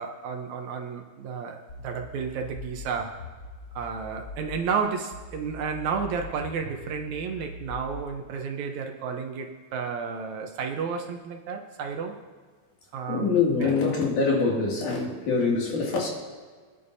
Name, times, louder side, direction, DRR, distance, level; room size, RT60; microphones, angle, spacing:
voice 1, 0.0-3.2 3.8-12.2 12.9-13.7, right 6 dB, 70° right, 4 dB, 2.1 m, -32 dB
sound 1, 1.7-4.7 5.1-8.1, left 3 dB, 50° left, 1.7 m, -42 dB
voice 2, 13.1-16.1, left 4 dB, 80° left, -2 dB, 3.9 m, -24 dB
24.5 x 10.5 x 2.7 m, 1.5 s
omnidirectional pair, 3.5 m